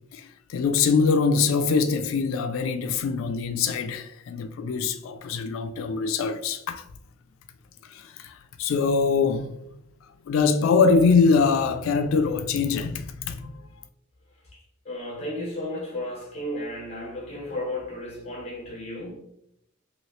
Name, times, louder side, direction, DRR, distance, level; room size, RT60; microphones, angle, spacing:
voice 1, 0.1-6.8 7.9-9.5 10.3-13.6, left 5 dB, 85° left, 0.3 m, -23 dB
voice 2, 14.8-19.2, left 1 dB, 30° left, 1.1 m, -33 dB
3.0 x 2.7 x 3.0 m
head